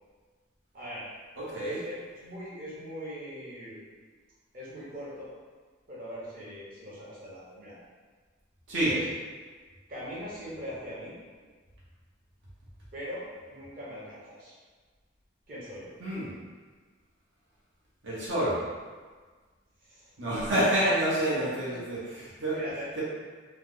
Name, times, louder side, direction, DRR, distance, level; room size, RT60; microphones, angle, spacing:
voice 1, 0.7-1.1 1.5-1.9 2.2-3.8 4.5-5.3 5.9-7.7 8.9-9.0 9.9-11.1 12.9-14.5 15.5-15.9 19.8-20.1 21.2-21.7 22.5-23.0, equal, 50° right, -9 dB, 0.9 m, -41 dB
voice 2, 1.4-1.8 8.7-8.9 16.0-16.3 18.0-18.6 20.2-22.6 23.0-23.1, right 1 dB, 75° right, -8 dB, 0.9 m, -28 dB
3.0 x 2.0 x 3.6 m, 1.5 s
head